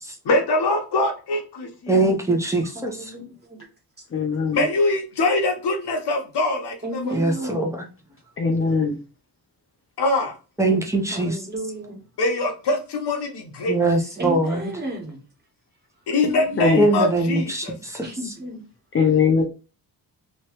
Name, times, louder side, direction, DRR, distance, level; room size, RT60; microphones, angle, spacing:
voice 1, 0.2-1.9 4.5-6.7 10.0-10.3 12.2-13.7 16.1-17.7, left 2 dB, 70° left, 1.2 m, -23 dB
voice 2, 1.9-3.0 7.1-7.8 10.6-11.4 13.7-14.7 16.8-18.1, right 2 dB, 5° right, 0.7 m, -22 dB
voice 3, 2.7-3.6 4.0-4.1 6.8-7.7 8.2-8.3 11.1-12.0 14.2-15.2 18.0-18.6, right 1 dB, 25° right, 1.4 m, -33 dB
voice 4, 4.1-4.6 8.4-9.0 16.2-16.8 18.9-19.4, left 5 dB, 30° left, 0.6 m, -21 dB
3.2 x 3.0 x 3.0 m
wide cardioid pair, 140°, 42 cm